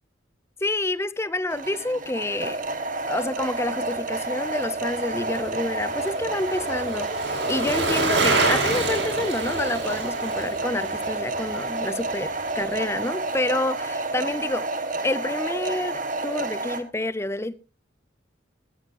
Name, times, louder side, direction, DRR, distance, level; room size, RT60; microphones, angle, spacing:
voice 1, 0.6-2.6 3.1-14.7 15.0-17.5, left 2 dB, 15° left, 0.6 m, -28 dB
sound 1, 1.5-16.8, right 2 dB, 45° right, 1.8 m, -30 dB
Bicycle, 4.4-12.8 13.1-13.2, right 3 dB, 75° right, 6.6 m, -28 dB
18.0 x 12.0 x 2.9 m
head